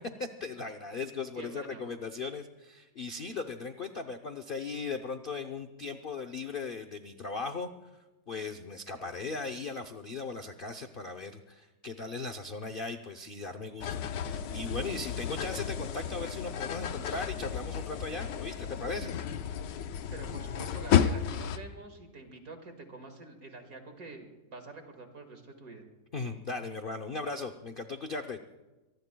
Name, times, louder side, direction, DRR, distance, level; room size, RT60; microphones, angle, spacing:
voice 1, 0.2-7.9 8.3-19.1 26.1-28.4, left 4 dB, 50° left, 6 dB, 0.7 m, -38 dB
voice 2, 1.4-1.8 20.1-25.8, right 3 dB, 55° right, 5 dB, 2.4 m, -46 dB
sound 1, 13.8-21.6, left 8 dB, 90° left, 1.4 m, -32 dB
24.5 x 20.0 x 2.3 m, 1.1 s
omnidirectional pair, 1.9 m